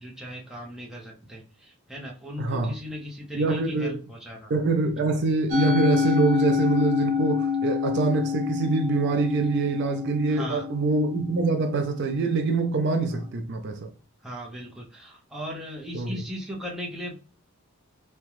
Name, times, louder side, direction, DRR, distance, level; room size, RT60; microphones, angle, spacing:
voice 1, 0.0-4.5 10.3-10.7 13.1-13.3 14.2-17.2, equal, ahead, 0.7 m, -38 dB
voice 2, 2.4-2.7 3.3-4.0 4.5-13.9 15.9-16.2, right 3 dB, 50° right, 0.4 m, -25 dB
Musical instrument, 5.5-11.9, left 6 dB, 70° right, 0.9 m, -27 dB
3.6 x 2.2 x 3.0 m
head